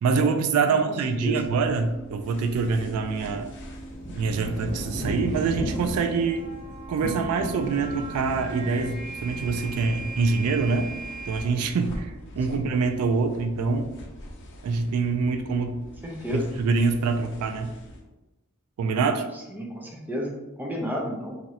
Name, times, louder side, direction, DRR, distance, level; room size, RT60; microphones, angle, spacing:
voice 1, 0.0-3.5 4.2-6.5 6.9-10.9 11.3-13.9 14.6-15.8 16.3-17.7 18.8-19.3, right 4 dB, 80° right, 6 dB, 0.3 m, -25 dB
sound 1, 1.4-18.0, equal, 55° left, 0.5 m, -44 dB
sound 2, 1.8-11.4, right 3 dB, 50° right, 0.6 m, -41 dB
sound 3, 2.9-11.3, equal, 30° left, 0.8 m, -36 dB
voice 2, 16.0-16.5 19.3-21.3, equal, 10° right, -1 dB, 0.4 m, -31 dB
3.0 x 2.5 x 2.7 m, 1.0 s
head